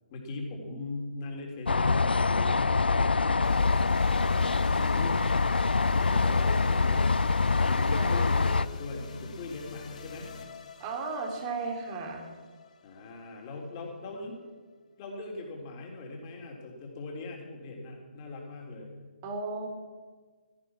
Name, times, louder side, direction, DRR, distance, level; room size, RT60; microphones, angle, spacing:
voice 1, 0.1-5.3 5.8-10.3 12.8-14.4 15.0-18.9, left 2 dB, 25° left, 0 dB, 3.6 m, -41 dB
sound 1, 1.7-8.7, left 4 dB, 75° left, 0.4 m, -25 dB
sound 2, 3.4-13.8, left 4 dB, 45° left, 2.0 m, -44 dB
voice 2, 10.8-12.3 19.2-19.7, right 4 dB, 25° right, 3 dB, 3.0 m, -35 dB
16.5 x 13.0 x 6.1 m, 1.5 s
figure-of-eight pair, 145°, 5 cm